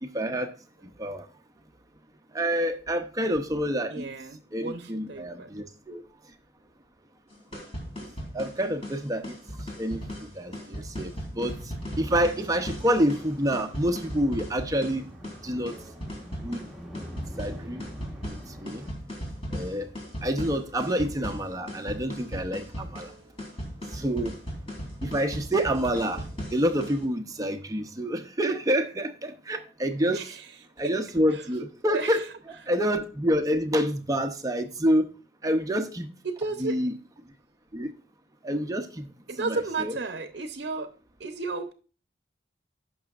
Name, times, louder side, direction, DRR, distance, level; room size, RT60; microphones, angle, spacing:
voice 1, 0.0-0.5 1.0-1.2 2.3-4.1 4.5-6.0 8.0-8.1 8.3-9.4 9.8-10.0 10.4-11.5 12.0-15.1 15.4-15.7 16.4-16.7 17.4-17.8 18.6-18.9 19.5-19.9 20.2-23.1 23.9-24.3 25.0-26.2 26.5-30.2 30.8-32.2 32.7-35.1 35.4-36.1 36.6-36.9 37.7-37.9 38.4-39.1 39.4-40.0, equal, 20° right, 0.7 m, -27 dB
voice 2, 3.9-5.6 10.9-11.0 30.1-30.5 30.8-30.9 31.3-31.5 31.9-32.3 36.2-36.8 39.3-40.9 41.2-41.7, right 3 dB, 60° right, 0.8 m, -33 dB
sound 1, 7.3-27.0, equal, 30° left, 3.1 m, -37 dB
sound 2, 11.9-18.9, equal, ahead, 1.2 m, -45 dB
15.0 x 6.2 x 2.5 m
head